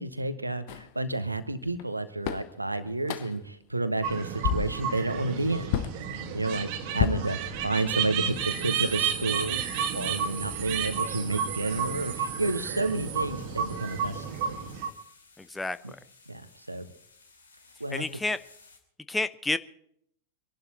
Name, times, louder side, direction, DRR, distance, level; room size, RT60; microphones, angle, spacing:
voice 1, 0.0-5.7 6.3-6.7 6.9-14.6 15.8-15.9 16.3-16.9 17.8-18.0, right 2 dB, 85° right, 11 dB, 1.2 m, -31 dB
sound 1, 0.7-0.9 1.8-1.9 2.2-2.5 3.0-3.5 3.9-4.1 4.4-4.9 5.7-6.0 7.0-7.9, left 10 dB, 50° left, 1.1 m, -30 dB
sound 2, 4.0-14.9, right 7 dB, 45° right, 1.7 m, -32 dB
sound 3, 9.5-18.8, left 4 dB, 75° left, 2.6 m, -55 dB
voice 2, 15.4-15.8 17.9-18.4 19.1-19.6, left 2 dB, 10° left, 14 dB, 0.6 m, -29 dB
24.5 x 11.5 x 4.3 m, 0.69 s
figure-of-eight pair, 90°, 0 cm